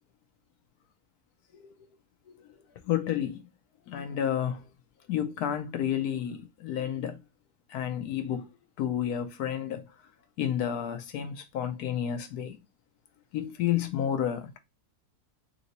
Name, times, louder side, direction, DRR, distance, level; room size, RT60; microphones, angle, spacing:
voice 1, 2.8-3.4 3.9-4.7 5.1-7.2 7.7-8.5 8.8-9.9 10.4-12.6 13.3-14.6, left 10 dB, 80° left, 1.2 m, -31 dB
3.7 x 3.0 x 4.1 m
omnidirectional pair, 1.7 m